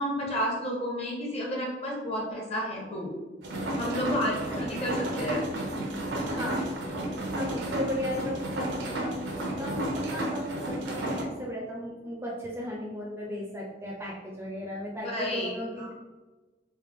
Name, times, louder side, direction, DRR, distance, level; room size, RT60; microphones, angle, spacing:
voice 1, 0.0-3.1 3.8-5.4 15.0-15.9, equal, 35° left, -3 dB, 1.0 m, -31 dB
sound 1, 3.4-11.2, right 1 dB, 85° right, 0.7 m, -32 dB
voice 2, 4.0-4.5 6.2-6.7 7.4-15.9, left 1 dB, 15° right, -3 dB, 0.5 m, -36 dB
3.2 x 2.5 x 3.5 m, 1.2 s
head